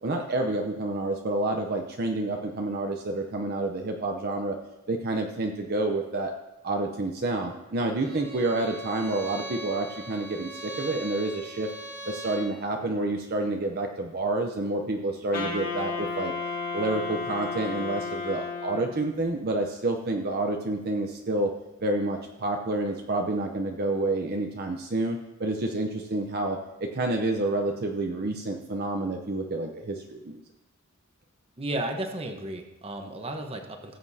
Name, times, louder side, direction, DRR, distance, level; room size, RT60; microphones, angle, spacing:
voice 1, 0.0-4.6 4.9-6.3 6.6-11.7 12.1-16.3 16.7-21.5 21.8-30.4, right 2 dB, 50° right, 3 dB, 0.7 m, -29 dB
Bowed string instrument, 8.0-12.5, right 1 dB, 65° right, 2.6 m, -40 dB
Wind instrument woodwind instrument, 15.3-19.2, left 4 dB, 45° left, 2.4 m, -33 dB
voice 2, 31.6-34.0, right 1 dB, 30° right, 4 dB, 1.1 m, -33 dB
18.0 x 7.8 x 2.8 m, 0.97 s
head